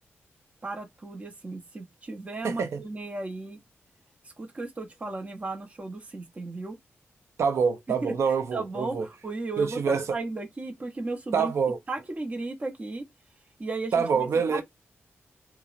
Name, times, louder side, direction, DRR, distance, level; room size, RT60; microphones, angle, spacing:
voice 1, 0.6-3.6 4.2-6.8 8.0-8.1 8.5-11.5 11.9-13.0 13.6-14.6, right 3 dB, 30° right, 0.7 m, -35 dB
voice 2, 2.4-2.8 7.4-9.1 9.6-10.0 11.3-11.8 13.9-14.6, right 6 dB, 75° right, 0.5 m, -25 dB
2.8 x 2.0 x 2.4 m
wide cardioid pair, 105°, 5 cm